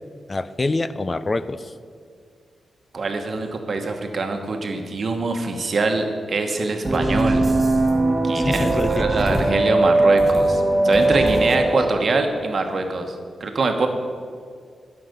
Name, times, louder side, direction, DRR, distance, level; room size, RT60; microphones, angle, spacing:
voice 1, 0.3-1.7 8.3-9.1, left 2 dB, 30° left, 14 dB, 0.4 m, -25 dB
voice 2, 2.9-7.4 8.2-13.1 13.4-13.9, right 3 dB, 50° right, 5 dB, 1.2 m, -24 dB
sound 1, 6.8-11.9, right 2 dB, 25° right, 1.5 m, -19 dB
13.0 x 5.9 x 6.7 m, 2.2 s
cardioid pair, 95°, 0 cm